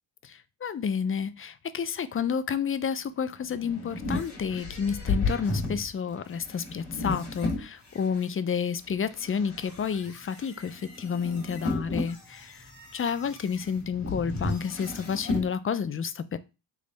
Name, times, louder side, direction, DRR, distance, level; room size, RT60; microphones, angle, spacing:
voice 1, 0.2-12.7 12.9-16.4, left 6 dB, 30° left, 0.4 m, -30 dB
sound 1, 3.2-8.3 8.8-15.5, left 2 dB, 55° left, 1.9 m, -34 dB
3.6 x 3.1 x 3.9 m
cardioid pair, 70°, 48 cm